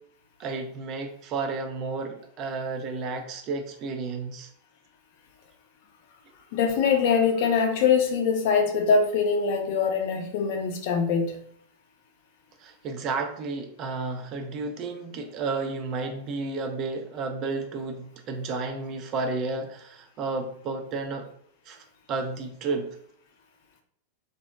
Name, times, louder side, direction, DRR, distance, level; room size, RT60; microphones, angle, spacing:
voice 1, 0.4-4.5 12.6-21.3 21.7-22.9, right 3 dB, 35° right, 4 dB, 0.5 m, -32 dB
voice 2, 6.5-11.4, left 5 dB, 50° left, 4 dB, 0.6 m, -23 dB
2.6 x 2.1 x 3.5 m, 0.64 s
figure-of-eight pair, 90°, 0 cm